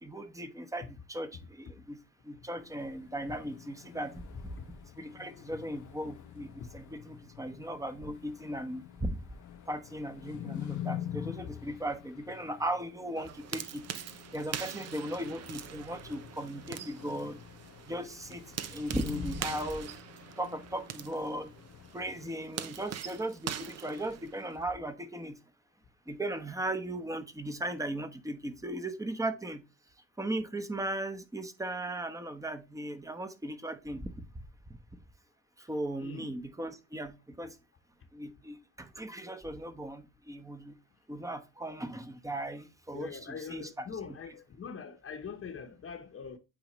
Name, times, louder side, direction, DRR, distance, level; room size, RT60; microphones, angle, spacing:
voice 1, 0.0-2.0 2.2-4.5 5.0-9.2 9.7-13.8 14.3-17.4 17.9-19.9 20.4-21.5 21.9-25.4 26.1-29.6 30.2-34.2 35.6-37.5 38.1-40.7 41.1-44.4, right 1 dB, 10° right, 1.0 m, -37 dB
sound 1, 2.6-22.3, left 11 dB, 75° left, 0.8 m, -46 dB
sound 2, 13.2-24.6, right 9 dB, 55° right, 0.7 m, -43 dB
voice 2, 36.0-36.3 42.9-46.4, left 6 dB, 45° left, 1.0 m, -43 dB
8.8 x 3.8 x 3.1 m
cardioid pair, 90°, 30 cm